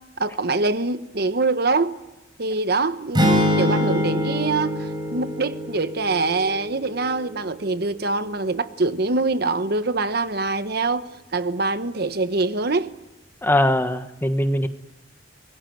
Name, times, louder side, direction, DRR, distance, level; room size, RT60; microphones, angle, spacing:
voice 1, 0.2-2.0 2.4-12.9, right 3 dB, 60° right, 1.1 m, -24 dB
sound 1, 3.2-7.3, left 1 dB, 25° right, 5.4 m, -24 dB
voice 2, 13.4-14.7, left 1 dB, 10° left, 1.3 m, -21 dB
25.0 x 21.0 x 9.2 m
head